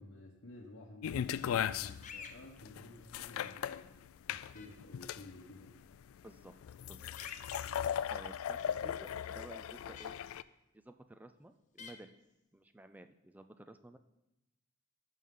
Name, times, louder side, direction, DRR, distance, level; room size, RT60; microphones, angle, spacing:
voice 1, 0.0-3.9 4.3-5.8, left 1 dB, 60° left, -4 dB, 1.0 m, -53 dB
sound 1, 1.0-10.4, left 9 dB, 80° left, 0.3 m, -38 dB
sound 2, 2.0-2.4 4.6-4.7 7.2-7.6 10.0-10.1 11.8-11.9, left 6 dB, 35° left, 0.7 m, -47 dB
voice 2, 6.2-6.6 6.9-7.0 8.1-10.2 10.7-12.2 12.5-14.0, right 1 dB, 10° right, 9 dB, 0.4 m, -54 dB
12.5 x 6.4 x 3.7 m, 0.91 s
head